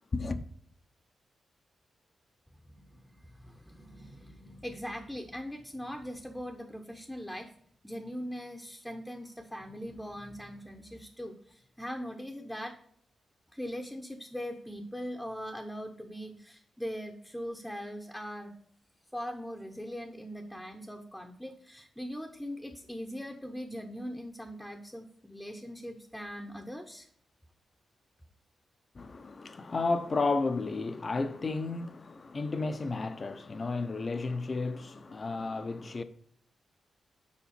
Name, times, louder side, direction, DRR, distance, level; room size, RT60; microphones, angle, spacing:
voice 1, 0.1-0.4 28.9-36.0, left 3 dB, 40° left, 0.7 m, -32 dB
voice 2, 2.7-7.5 7.8-12.8 13.5-18.5 19.1-27.1, equal, 5° left, 0.8 m, -41 dB
7.2 x 4.9 x 4.2 m
cardioid pair, 90°, 0 cm